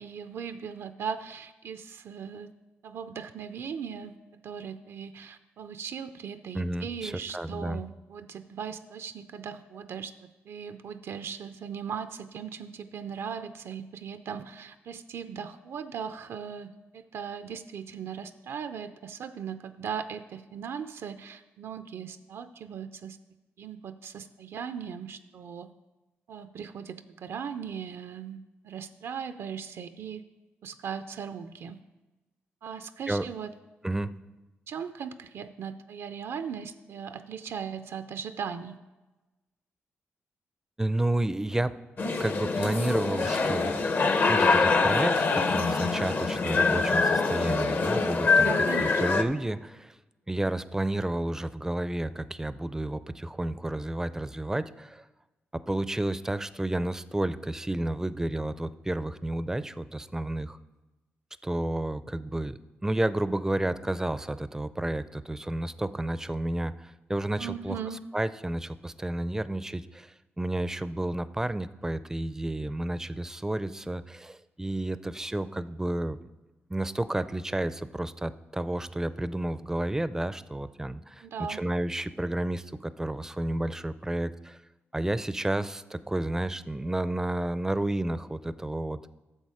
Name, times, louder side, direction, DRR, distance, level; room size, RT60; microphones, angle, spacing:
voice 1, 0.0-2.5 2.8-23.2 23.6-25.7 26.3-30.2 30.6-31.8 32.6-33.5 34.7-38.7 48.4-49.0 67.4-68.0 81.2-81.6, right 7 dB, 75° right, 10 dB, 0.4 m, -38 dB
voice 2, 6.5-7.8 33.1-33.3 33.8-34.2 40.8-41.8 42.2-43.7 44.3-48.5 48.8-50.0 50.3-55.0 55.7-60.6 61.4-67.8 68.1-76.2 76.7-84.6 84.9-89.1, right 1 dB, 10° right, 15 dB, 0.4 m, -31 dB
sound 1, 42.0-49.2, left 4 dB, 50° left, 0.7 m, -24 dB
9.9 x 6.9 x 4.8 m, 1.1 s
cardioid pair, 80°, 4 cm